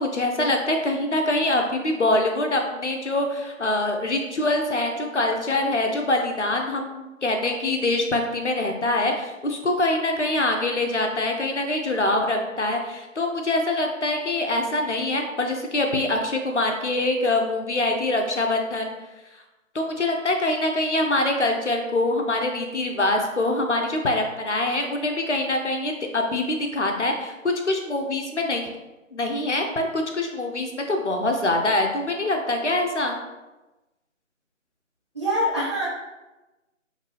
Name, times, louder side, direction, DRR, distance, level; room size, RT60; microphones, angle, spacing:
voice 1, 0.0-18.9 19.7-28.6 29.1-33.2, left 2 dB, 60° left, 3 dB, 0.6 m, -24 dB
voice 2, 35.1-35.9, equal, 20° right, -9 dB, 0.8 m, -24 dB
4.6 x 2.6 x 3.0 m, 1.1 s
figure-of-eight pair, 160°, 40 cm